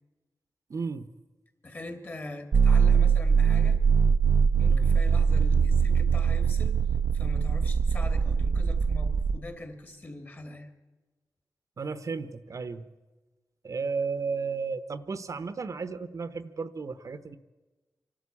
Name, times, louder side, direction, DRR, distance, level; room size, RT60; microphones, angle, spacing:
voice 1, 0.7-1.1 4.7-4.9 11.8-12.8 13.6-17.4, right 4 dB, 55° right, 13 dB, 1.0 m, -33 dB
voice 2, 1.6-3.8 4.6-6.8 7.1-10.7, left 1 dB, 30° left, 7 dB, 2.8 m, -42 dB
sound 1, 2.5-9.4, right 6 dB, 80° right, 0.7 m, -22 dB
25.0 x 12.5 x 8.5 m, 1.2 s
wide cardioid pair, 85°, 7 cm